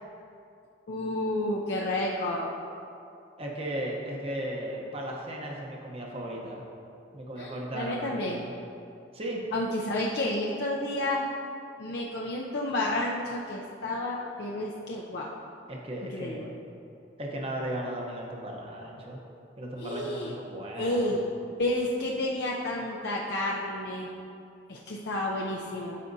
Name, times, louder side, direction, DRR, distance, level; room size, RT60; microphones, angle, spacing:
voice 1, 0.9-2.5 7.4-8.4 9.5-11.3 11.8-15.4 16.1-16.5 19.8-20.3 20.8-21.2 21.6-24.1 24.7-26.0, left 1 dB, 60° left, -3 dB, 0.6 m, -30 dB
voice 2, 3.4-6.6 7.1-8.5 9.1-9.4 15.7-16.5 17.2-19.2 19.6-21.1, right 1 dB, 30° right, -1 dB, 0.9 m, -36 dB
12.5 x 5.0 x 2.7 m, 2.6 s
head